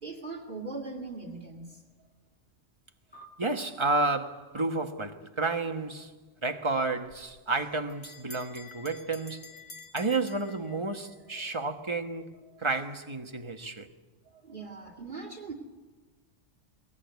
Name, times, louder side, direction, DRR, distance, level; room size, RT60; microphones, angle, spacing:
voice 1, 0.0-1.8 11.3-11.4 12.5-12.6 14.2-15.5, right 3 dB, 40° right, 2.6 m, -40 dB
sound 1, 3.1-5.9, right 2 dB, 5° left, 2.4 m, -58 dB
voice 2, 3.4-6.1 6.4-9.5 9.9-12.3 12.6-13.9, right 3 dB, 25° right, 1.3 m, -31 dB
Bell, 7.1-11.2, left 4 dB, 75° left, 1.9 m, -49 dB
23.0 x 19.5 x 9.4 m
omnidirectional pair, 1.3 m